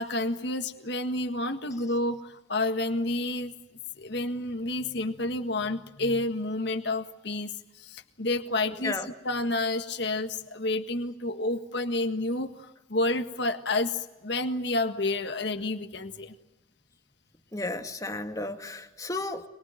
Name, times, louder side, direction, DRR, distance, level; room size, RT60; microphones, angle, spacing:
voice 1, 0.0-3.6 4.0-7.5 7.8-8.9 9.3-16.4, left 2 dB, 55° left, 7 dB, 1.7 m, -30 dB
voice 2, 8.7-9.1 17.5-19.4, left 2 dB, 15° left, 6 dB, 1.9 m, -33 dB
24.0 x 23.5 x 9.1 m, 0.98 s
head